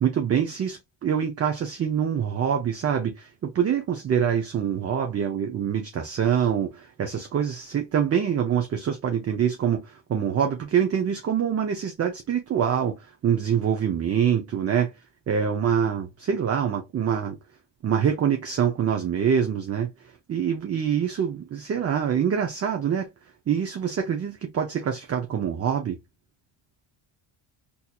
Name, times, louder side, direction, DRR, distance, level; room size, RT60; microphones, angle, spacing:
voice 1, 0.0-14.9 15.3-17.4 17.8-23.1 23.5-26.0, right 8 dB, 30° right, 0.5 m, -25 dB
4.2 x 2.7 x 2.3 m
cardioid pair, 120°, 49 cm